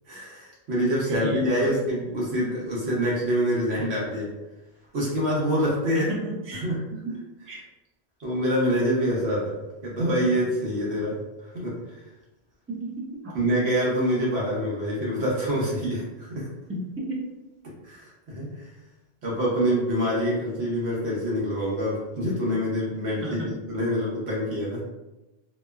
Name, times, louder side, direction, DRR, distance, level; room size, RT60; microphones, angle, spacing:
voice 1, 0.1-4.3 4.9-6.1 6.6-6.8 8.2-9.6 9.8-12.0 13.3-16.5 17.8-18.7 19.2-24.8, equal, 70° right, -5 dB, 0.9 m, -26 dB
voice 2, 1.0-1.8 5.9-6.6 7.0-7.2 7.5-7.6 12.7-13.3 16.7-17.3 23.1-23.5, right 1 dB, 20° right, -4 dB, 0.3 m, -33 dB
2.9 x 2.1 x 2.2 m, 1.1 s
omnidirectional pair, 1.1 m